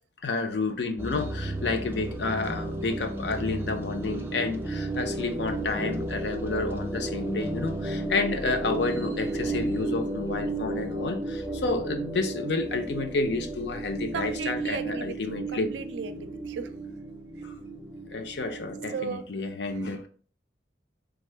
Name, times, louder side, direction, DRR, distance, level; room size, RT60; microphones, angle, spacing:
voice 1, 0.2-15.7 17.4-17.5 18.1-20.1, left 3 dB, 70° left, 0.5 m, -30 dB
sound 1, 1.0-19.1, right 2 dB, 10° right, 0.3 m, -33 dB
voice 2, 14.1-16.7 18.9-19.2, right 5 dB, 80° right, 0.4 m, -35 dB
3.5 x 2.0 x 3.2 m
head